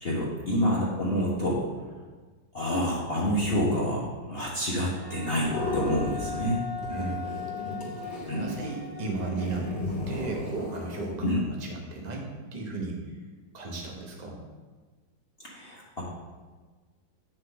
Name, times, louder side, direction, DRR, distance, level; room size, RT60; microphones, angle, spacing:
voice 1, 0.0-1.6 2.5-6.6 8.3-8.5 11.2-11.4 15.4-16.0, equal, 40° left, -5 dB, 1.2 m, -28 dB
Wind instrument woodwind instrument, 4.9-10.4, left 6 dB, 60° right, 2.5 m, -39 dB
sound 1, 5.3-6.5 6.8-11.1, left 1 dB, 75° left, 2.7 m, -35 dB
voice 2, 6.9-7.3 8.4-9.7 10.1-12.3 12.5-13.0 13.5-14.4, right 3 dB, 25° right, 0 dB, 1.1 m, -35 dB
8.3 x 6.8 x 3.9 m, 1.4 s
omnidirectional pair, 2.0 m